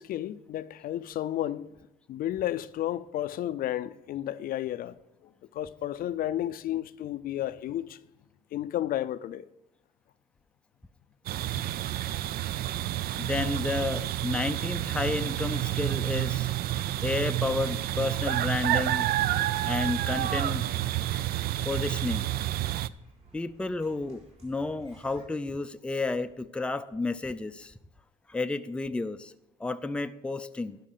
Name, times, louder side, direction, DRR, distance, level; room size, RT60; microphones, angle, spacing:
voice 1, 0.0-1.7 2.1-8.0 8.5-9.5, left 12 dB, 60° left, 0.5 m, -32 dB
sound 1, 11.3-22.9, right 14 dB, 65° right, 0.4 m, -29 dB
voice 2, 13.2-16.5 17.0-19.0 19.6-20.6 21.6-22.3 23.3-27.7 28.3-29.3 29.6-30.8, left 3 dB, 5° left, 0.4 m, -31 dB
sound 2, 16.1-25.3, right 2 dB, 40° right, 4.0 m, -57 dB
11.5 x 5.7 x 6.6 m
cardioid pair, 110°, 17 cm